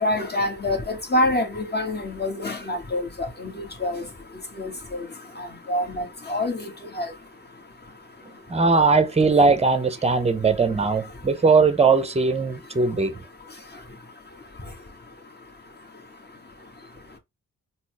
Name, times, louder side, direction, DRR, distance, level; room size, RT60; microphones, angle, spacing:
voice 1, 0.0-3.5 3.8-4.0 4.6-5.0 5.4-6.6 7.0-7.1, left 1 dB, 25° left, 1.4 m, -26 dB
voice 2, 8.5-13.2, right 4 dB, 15° right, 0.8 m, -19 dB
4.1 x 2.1 x 3.2 m
supercardioid pair, 40°, 39 cm